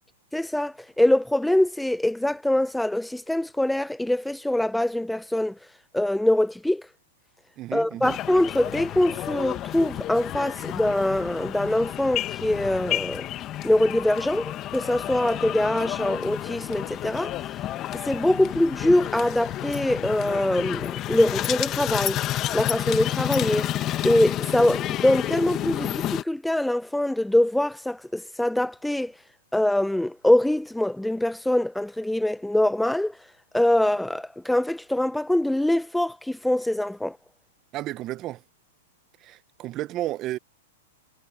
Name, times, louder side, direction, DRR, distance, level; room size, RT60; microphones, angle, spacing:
voice 1, 0.3-5.5 5.9-6.8 7.7-13.3 13.6-17.3 17.9-22.2 22.5-23.7 24.0-29.1 29.5-33.1 33.5-37.2, left 1 dB, 5° left, 1.0 m, -23 dB
voice 2, 7.6-8.2 37.7-38.4 39.2-40.4, right 15 dB, 35° right, 0.8 m, -32 dB
sound 1, 8.0-26.2, left 13 dB, 30° left, 1.5 m, -30 dB
hypercardioid pair, 130°, 0 cm